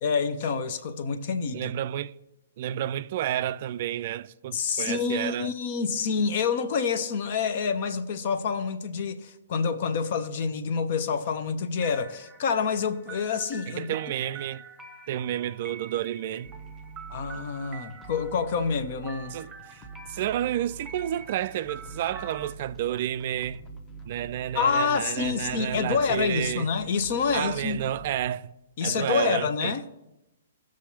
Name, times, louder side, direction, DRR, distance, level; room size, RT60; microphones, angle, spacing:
voice 1, 0.0-1.7 4.5-13.9 17.1-19.4 24.5-27.8 28.8-29.8, left 5 dB, 45° left, 0.9 m, -27 dB
voice 2, 1.5-2.1 2.6-5.5 13.7-14.6 15.1-16.5 19.3-23.6 24.1-26.7 27.3-28.5 28.8-29.7, right 11 dB, 45° right, 0.3 m, -30 dB
sound 1, 11.8-22.5, right 4 dB, 15° right, 1.0 m, -46 dB
sound 2, 16.4-28.3, right 4 dB, 15° left, 1.0 m, -45 dB
18.0 x 6.3 x 2.9 m
figure-of-eight pair, 120°, 0 cm